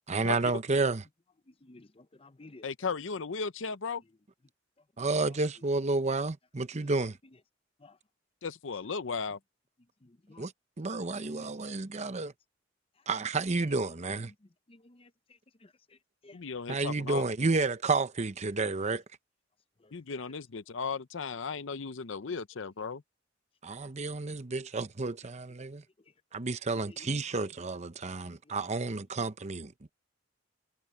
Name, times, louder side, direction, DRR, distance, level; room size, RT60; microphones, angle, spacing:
voice 1, 0.1-1.0 5.0-7.2 10.4-10.5 10.8-12.3 13.1-14.3 16.7-19.0 23.6-25.8 26.3-29.9, right 3 dB, 35° right, 0.8 m, -31 dB
voice 2, 1.6-2.7 7.8-8.0 10.0-10.5 11.1-11.5 14.7-15.1 15.6-15.7 16.2-16.4 26.7-27.1, left 2 dB, 30° left, 0.7 m, -53 dB
voice 3, 2.6-4.0 8.4-9.4 16.3-17.2 19.9-23.0, left 5 dB, 75° left, 0.7 m, -36 dB
head